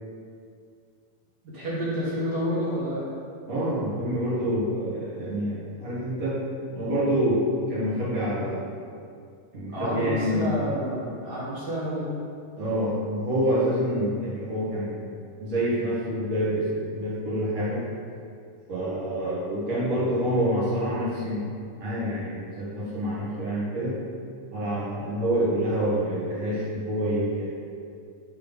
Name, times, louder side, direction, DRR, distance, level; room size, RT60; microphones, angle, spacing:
voice 1, 1.4-3.0 9.7-12.0, equal, 45° right, -9 dB, 1.4 m, -29 dB
voice 2, 3.5-6.4 6.7-8.7 9.5-10.5 12.6-15.1 15.4-17.8 18.7-21.4 21.8-24.0 24.5-27.5, equal, 65° right, -9 dB, 0.7 m, -27 dB
5.5 x 3.9 x 5.4 m, 2.3 s
omnidirectional pair, 3.9 m